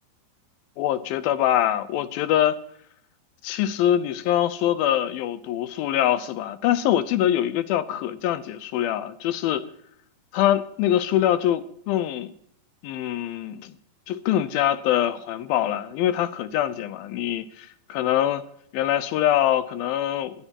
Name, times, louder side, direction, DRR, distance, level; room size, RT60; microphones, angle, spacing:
voice 1, 0.8-2.6 3.4-9.7 10.3-12.3 12.8-13.8 14.1-18.4 18.7-20.5, left 11 dB, 80° left, 2.6 m, -24 dB
22.5 x 13.0 x 2.9 m
omnidirectional pair, 4.2 m